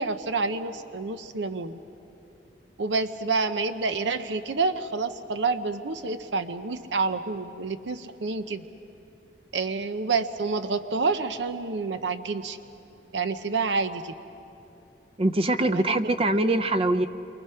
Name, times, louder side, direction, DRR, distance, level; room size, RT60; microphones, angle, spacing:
voice 1, 0.0-1.8 2.8-8.6 9.5-12.6 13.1-14.1 15.6-15.8, right 4 dB, 90° right, 10 dB, 0.7 m, -28 dB
voice 2, 15.2-17.1, right 2 dB, 35° right, 11 dB, 0.6 m, -23 dB
28.0 x 23.5 x 5.7 m, 2.8 s
head